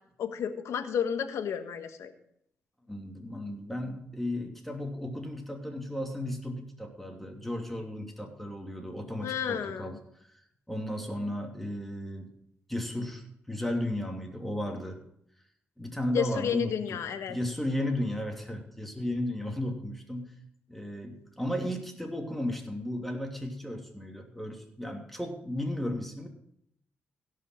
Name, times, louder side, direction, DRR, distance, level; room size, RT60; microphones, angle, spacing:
voice 1, 0.2-2.1 9.2-10.0 16.1-17.4, left 8 dB, 75° left, 8 dB, 1.3 m, -31 dB
voice 2, 2.9-10.0 10.2-10.4 10.7-12.3 12.7-15.0 15.8-17.0 17.3-20.3 20.7-26.3, left 1 dB, 5° left, 2 dB, 2.8 m, -34 dB
16.5 x 5.7 x 6.2 m, 0.72 s
cardioid pair, 60°, 5 cm